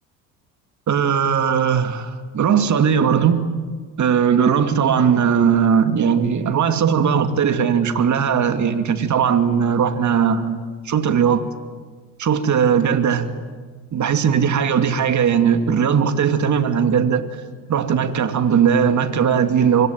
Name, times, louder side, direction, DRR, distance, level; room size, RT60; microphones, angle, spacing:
voice 1, 0.9-3.4 4.0-10.6 10.8-11.4 12.2-13.3 13.9-17.2 17.7-19.9, right 7 dB, 45° right, 2.5 m, -18 dB
25.5 x 24.0 x 9.2 m
hypercardioid pair, 60°, 42 cm